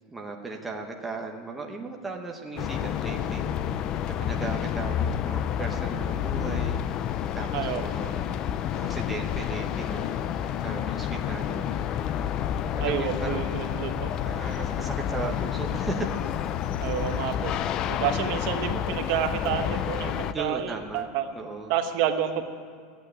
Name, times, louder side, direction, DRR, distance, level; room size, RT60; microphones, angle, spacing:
voice 1, 0.1-3.5 4.1-6.8 7.4-10.2 10.6-11.8 12.6-13.8 14.2-16.2 17.4-17.7 20.3-21.1 21.3-21.7, right 3 dB, 5° right, 0 dB, 0.9 m, -36 dB
sound 1, 2.6-20.3, left 9 dB, 25° left, 0.4 m, -29 dB
voice 2, 7.5-7.8 12.8-14.2 16.8-17.5 17.9-21.3 21.7-22.4, right 10 dB, 45° right, 6 dB, 1.0 m, -29 dB
14.0 x 9.3 x 9.8 m, 2.3 s
supercardioid pair, 180°, 2 cm